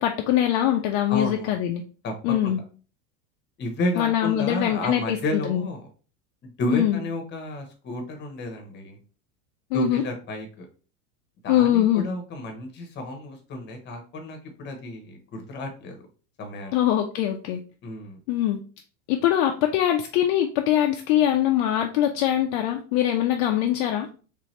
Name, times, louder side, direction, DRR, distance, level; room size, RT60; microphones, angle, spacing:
voice 1, 0.0-1.8 2.2-2.6 4.0-5.6 6.7-7.0 9.7-10.0 11.5-12.1 16.7-17.6 18.3-18.6 19.1-24.1, left 12 dB, 55° left, 4 dB, 0.5 m, -22 dB
voice 2, 1.1-1.5 2.0-2.6 3.6-5.9 6.4-9.0 9.7-10.7 11.4-16.0 16.4-16.8 17.8-18.2, left 1 dB, 30° left, 4 dB, 1.0 m, -31 dB
3.4 x 2.8 x 3.1 m, 0.37 s
supercardioid pair, 135°, 38 cm